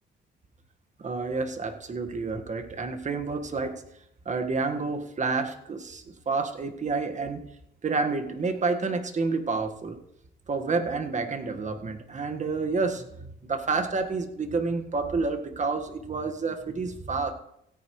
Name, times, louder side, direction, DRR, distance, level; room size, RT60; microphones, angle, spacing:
voice 1, 1.0-3.8 4.2-7.4 7.8-10.0 10.5-17.3, right 4 dB, 35° right, 6 dB, 1.7 m, -29 dB
16.5 x 9.4 x 3.2 m, 0.77 s
cardioid pair, 90°, 20 cm